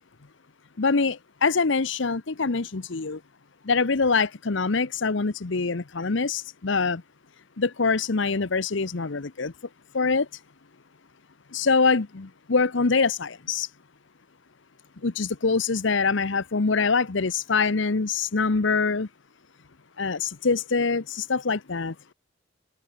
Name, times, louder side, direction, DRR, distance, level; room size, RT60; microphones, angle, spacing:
voice 1, 0.8-3.2 3.6-7.0 7.6-9.5 9.9-10.3 11.5-13.7 15.0-19.1 20.0-21.9, left 4 dB, 65° left, 0.9 m, -24 dB
open air
head